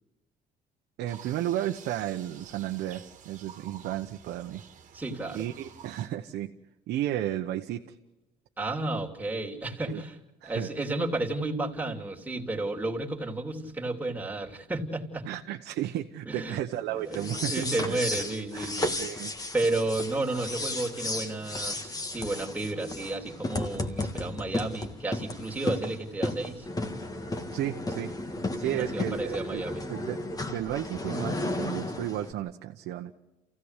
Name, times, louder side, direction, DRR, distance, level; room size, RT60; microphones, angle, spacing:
voice 1, 1.0-4.6 5.3-6.5 6.9-7.8 9.9-10.0 10.4-10.7 15.3-18.0 18.5-18.7 19.0-19.3 27.5-28.1 28.6-29.6 29.9-30.2 30.5-33.1, right 12 dB, 80° right, 3 dB, 1.1 m, -33 dB
Birds chirping in The North, 1.1-6.1, right 7 dB, 50° right, 2.0 m, -50 dB
voice 2, 4.9-5.5 8.6-10.2 10.4-15.3 16.3-16.6 16.9-19.0 19.5-26.7 28.3-29.8, right 2 dB, 10° right, 0 dB, 3.0 m, -32 dB
sound 1, 17.1-32.3, left 2 dB, 20° left, 1.9 m, -34 dB
28.0 x 16.0 x 8.2 m, 1.0 s
cardioid pair, 110°, 17 cm